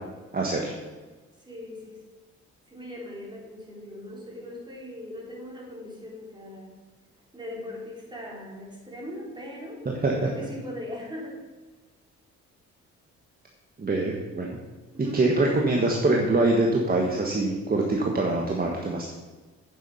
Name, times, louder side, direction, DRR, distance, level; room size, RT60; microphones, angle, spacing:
voice 1, 0.3-0.7 9.8-10.3 13.8-14.6 15.0-19.1, right 2 dB, 30° right, 0 dB, 1.5 m, -24 dB
voice 2, 1.5-2.0 2.7-6.7 7.3-11.5 14.9-15.5, left 1 dB, 15° right, -3 dB, 3.8 m, -39 dB
9.1 x 7.5 x 5.6 m, 1.3 s
cardioid pair, 90°, 30 cm